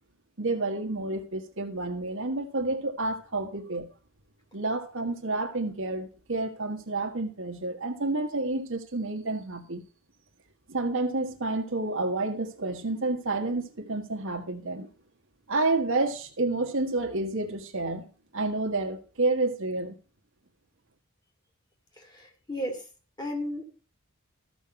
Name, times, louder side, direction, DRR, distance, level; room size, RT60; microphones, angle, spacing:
voice 1, 0.4-3.9 4.5-9.8 10.7-14.9 15.5-18.1 18.3-19.9, right 2 dB, 65° right, 1.5 m, -29 dB
voice 2, 22.0-22.9 23.2-23.6, equal, 20° left, 2.4 m, -34 dB
13.5 x 5.9 x 5.8 m
head